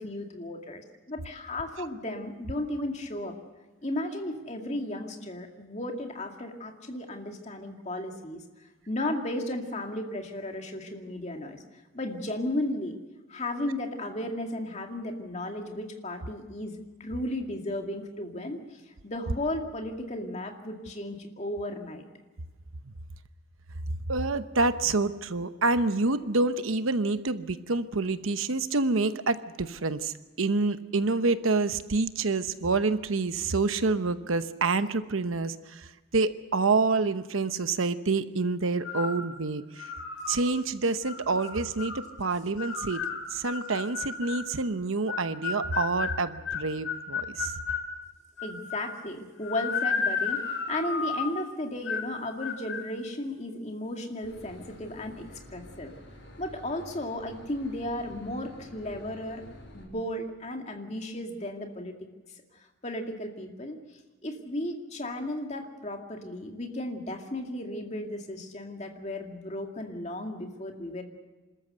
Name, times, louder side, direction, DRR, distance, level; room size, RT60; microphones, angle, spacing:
voice 1, 0.0-3.3 3.8-8.4 8.9-11.6 11.9-13.0 13.3-18.6 19.0-22.0 48.4-55.3 55.5-55.9 56.4-59.4 59.7-62.0 62.5-63.8 64.2-71.0, left 1 dB, 35° left, 3 dB, 2.3 m, -34 dB
voice 2, 24.1-35.9 36.1-39.9 40.3-43.1 43.3-47.5, right 3 dB, 85° right, 11 dB, 0.9 m, -27 dB
sound 1, 38.8-39.2 39.8-40.4 41.0-42.0 42.6-44.5 45.1-47.9 48.4-49.0 49.4-51.4 51.9-52.1 52.4-52.8, left 5 dB, 85° left, 3.5 m, -33 dB
Boat Water vehicle / Engine, 54.2-59.8, equal, 65° left, 6.6 m, -49 dB
27.0 x 13.5 x 8.0 m, 1.2 s
head